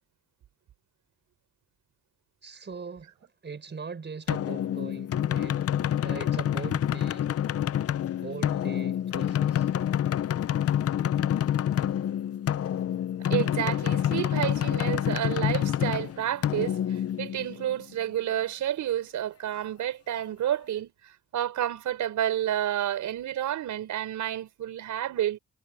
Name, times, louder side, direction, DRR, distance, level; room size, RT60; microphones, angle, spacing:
voice 1, 2.4-5.6 6.0-7.3 8.2-9.7, right 5 dB, 35° right, 6.4 m, -41 dB
sound 1, 4.3-17.8, left 10 dB, 50° left, 0.7 m, -27 dB
voice 2, 13.3-20.9 21.3-25.4, right 11 dB, 75° right, 4.9 m, -30 dB
cardioid pair, 90°, 30 cm